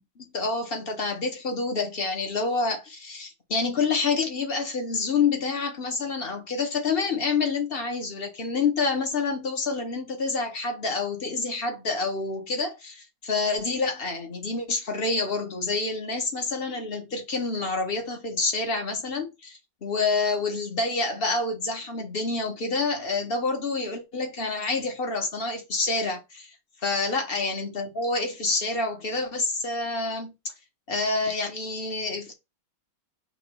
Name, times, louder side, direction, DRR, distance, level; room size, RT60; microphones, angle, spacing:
voice 1, 0.2-26.5 26.8-30.3 30.9-32.3, left 4 dB, 30° left, 1.4 m, -28 dB
5.9 x 2.9 x 5.6 m
omnidirectional pair, 2.2 m